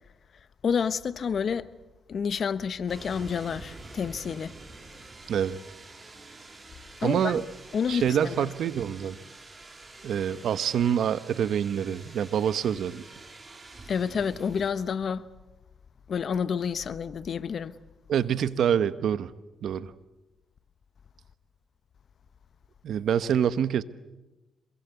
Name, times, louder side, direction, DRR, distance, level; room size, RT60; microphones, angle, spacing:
voice 1, 0.6-1.7 2.1-4.6 7.0-7.4 7.7-8.5 13.9-15.3 16.1-17.7, left 6 dB, 60° left, 1.1 m, -29 dB
sound 1, 2.9-14.7, right 3 dB, 30° right, 4.2 m, -47 dB
voice 2, 5.3-5.6 7.0-7.4 7.9-9.2 10.0-13.0 18.1-19.3 19.6-19.9 22.8-23.8, right 9 dB, 75° right, 1.0 m, -26 dB
26.5 x 22.5 x 8.3 m
cardioid pair, 70°, 0 cm